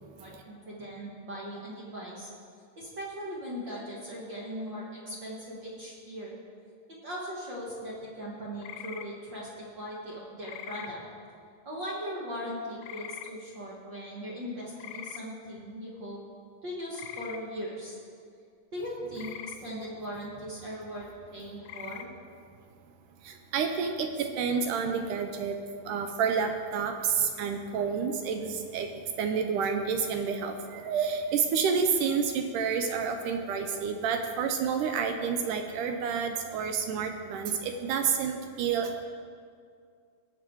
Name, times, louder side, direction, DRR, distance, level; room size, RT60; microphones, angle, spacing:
voice 1, 0.2-2.3 2.7-6.3 7.0-11.0 11.6-16.2 16.6-18.0 18.7-19.3 19.6-22.1, equal, 45° right, -4 dB, 1.5 m, -39 dB
sound 1, 8.6-9.1 10.4-10.9 12.8-13.3 14.8-15.2 16.9-17.4 19.2-19.6 21.6-22.1, left 10 dB, 85° left, 2.3 m, -42 dB
voice 2, 23.3-25.5 25.9-28.9 29.2-38.9, right 6 dB, 75° right, 5 dB, 2.0 m, -29 dB
18.0 x 7.8 x 4.6 m, 2.2 s
omnidirectional pair, 4.1 m